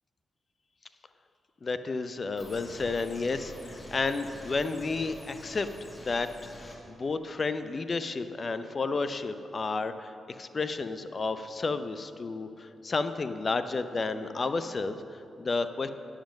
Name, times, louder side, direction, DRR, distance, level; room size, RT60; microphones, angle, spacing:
voice 1, 1.6-6.3 6.6-15.9, left 3 dB, 50° left, 11 dB, 0.6 m, -32 dB
sound 1, 2.4-6.8, left 1 dB, 30° left, 2.4 m, -46 dB
10.0 x 7.4 x 6.4 m, 2.7 s
supercardioid pair, 45°, 0 cm